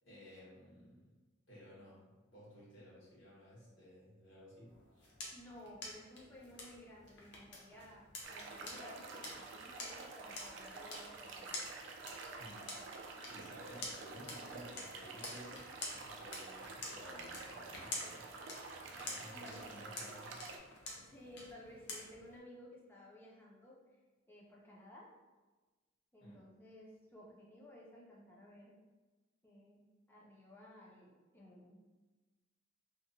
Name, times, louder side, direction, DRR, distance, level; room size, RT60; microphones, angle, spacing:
voice 1, 0.0-1.1 1.5-5.1 12.4-12.7 13.0-18.3 18.9-20.9 26.2-26.4, equal, 75° left, -8 dB, 1.3 m, -55 dB
sound 1, 4.7-22.4, left 2 dB, 55° left, 0.6 m, -49 dB
voice 2, 5.3-11.6 19.3-20.1 21.0-23.8 24.3-25.1 26.1-28.8 29.4-31.8, left 1 dB, 10° left, -4 dB, 0.4 m, -56 dB
sound 2, 8.2-20.6, right 3 dB, 65° right, 0.3 m, -49 dB
2.7 x 2.1 x 2.6 m, 1.3 s
head